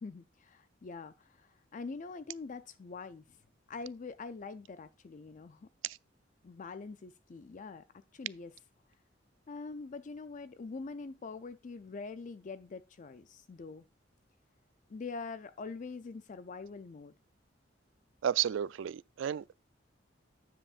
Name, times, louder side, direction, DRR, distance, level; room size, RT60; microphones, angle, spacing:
voice 1, 0.0-3.4 3.7-5.7 6.4-8.5 9.5-13.8 14.9-17.1, left 4 dB, 40° left, 0.4 m, -44 dB
voice 2, 18.2-19.5, right 9 dB, 85° right, 0.3 m, -32 dB
9.8 x 7.6 x 2.4 m
head